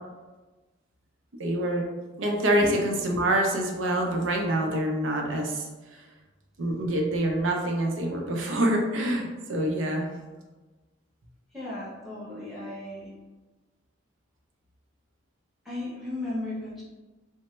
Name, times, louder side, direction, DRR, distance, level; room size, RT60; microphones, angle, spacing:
voice 1, 1.4-1.9 2.2-5.6 6.6-10.1, right 1 dB, 70° right, 1 dB, 0.5 m, -26 dB
voice 2, 11.5-13.1 15.6-16.8, left 1 dB, ahead, -8 dB, 0.7 m, -35 dB
3.1 x 2.0 x 3.0 m, 1.2 s
head